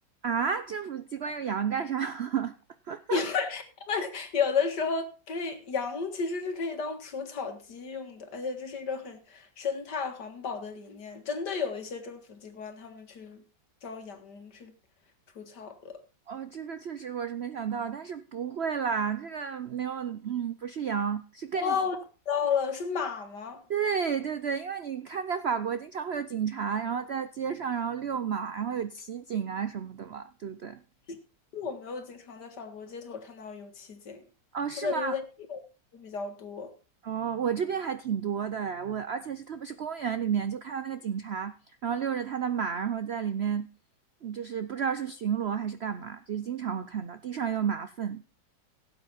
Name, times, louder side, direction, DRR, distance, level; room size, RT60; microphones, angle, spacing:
voice 1, 0.2-2.5 2.9-3.2 16.3-21.7 23.7-30.8 34.5-35.1 37.0-41.6 41.8-43.7 44.2-48.2, right 7 dB, 60° right, 0.6 m, -31 dB
voice 2, 3.1-13.4 13.8-14.7 15.4-16.0 21.5-22.0 22.3-23.6 31.5-34.2 34.8-35.2 35.5-35.6 35.9-36.7, left 5 dB, 65° left, 2.3 m, -33 dB
17.0 x 8.4 x 4.3 m
omnidirectional pair, 1.9 m